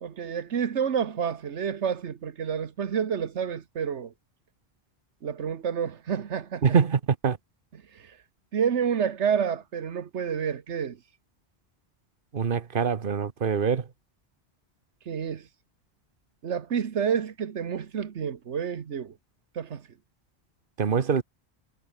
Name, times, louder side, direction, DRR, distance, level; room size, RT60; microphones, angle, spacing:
voice 1, 0.0-4.1 5.2-6.6 7.7-7.8 8.5-11.0 15.1-15.4 16.4-19.1 19.5-19.8, right 7 dB, 90° right, 1.5 m, -29 dB
voice 2, 6.6-7.4 12.3-13.8 20.8-21.2, right 6 dB, 50° right, 1.2 m, -24 dB
omnidirectional pair, 1.1 m